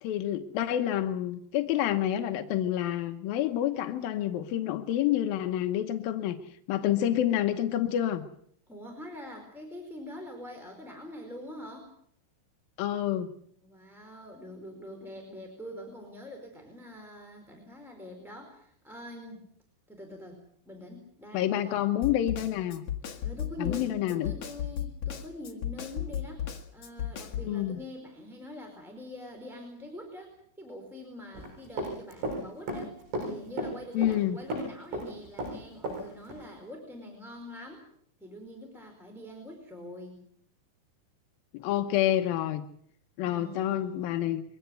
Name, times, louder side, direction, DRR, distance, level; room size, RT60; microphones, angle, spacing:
voice 1, 0.0-6.4 6.7-8.2 12.8-13.3 21.3-22.8 23.6-24.3 27.4-27.8 33.9-34.4 41.5-42.6 43.2-44.4, left 12 dB, 75° left, 6 dB, 2.2 m, -28 dB
voice 2, 8.7-11.9 13.6-19.4 19.9-21.8 22.2-22.4 23.2-26.5 26.7-37.8 38.2-40.2 43.2-44.1, left 1 dB, ahead, 2 dB, 3.9 m, -44 dB
Snare drum, 22.0-27.5, left 9 dB, 55° left, 1.9 m, -35 dB
Run, 31.3-32.4 32.7-34.2 34.5-36.0 36.3-36.4, right 1 dB, 65° right, 9.9 m, -34 dB
23.0 x 17.5 x 8.0 m, 0.65 s
omnidirectional pair, 5.4 m